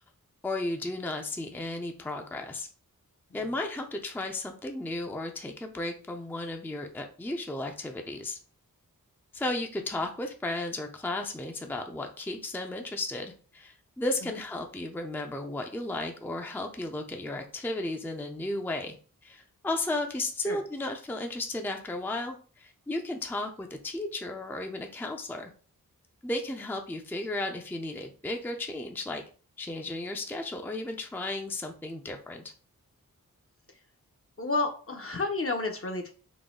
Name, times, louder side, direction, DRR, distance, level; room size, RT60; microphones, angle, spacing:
voice 1, 0.4-2.7 3.3-8.4 9.3-19.0 19.2-25.5 26.2-29.2 29.6-32.5, left 2 dB, 5° left, 4 dB, 0.5 m, -34 dB
voice 2, 34.4-36.1, left 3 dB, 40° left, 4 dB, 0.7 m, -31 dB
3.9 x 2.2 x 3.7 m, 0.40 s
cardioid pair, 50°, 34 cm